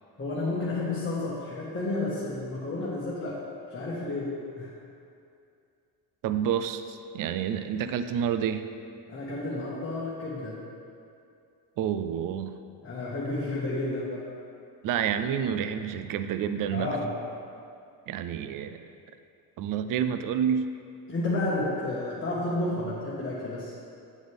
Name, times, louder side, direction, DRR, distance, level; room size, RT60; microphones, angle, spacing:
voice 1, 0.2-3.4 3.7-4.7 9.1-10.6 12.8-14.3 16.7-17.2 21.1-23.7, left 2 dB, 30° left, -8 dB, 1.6 m, -31 dB
voice 2, 6.2-8.7 11.8-12.5 14.8-16.9 18.1-18.8 19.6-20.7, right 8 dB, 50° right, 10 dB, 0.5 m, -29 dB
8.4 x 7.9 x 3.5 m, 2.5 s
cardioid pair, 100°, 41 cm